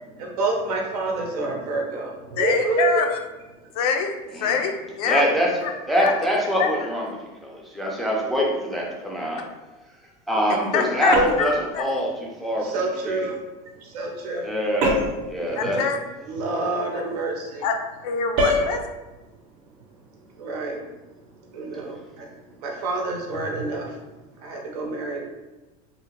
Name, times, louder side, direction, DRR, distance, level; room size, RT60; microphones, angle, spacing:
voice 1, 0.2-3.0 12.6-13.4 13.8-14.5 15.5-15.7 16.2-17.7 20.3-20.8 21.5-24.0 24.4-25.2, right 3 dB, 90° right, 0 dB, 0.7 m, -28 dB
voice 2, 2.4-3.2 3.7-4.1 4.4-5.2 5.6-5.7 6.0-6.1 6.6-6.7 10.7-11.2 11.7-11.8 15.6-16.0 17.6-17.7 18.0-18.8, left 6 dB, 85° left, 4 dB, 0.5 m, -24 dB
voice 3, 5.1-5.5 5.9-7.1 7.4-9.4 10.3-13.3 14.4-15.8, equal, ahead, -3 dB, 0.4 m, -24 dB
sound 1, 11.1-11.6 14.8-15.3 18.4-18.7, equal, 50° right, 0.6 m, -22 dB
2.7 x 2.0 x 2.8 m, 1.1 s
supercardioid pair, 145°, 19 cm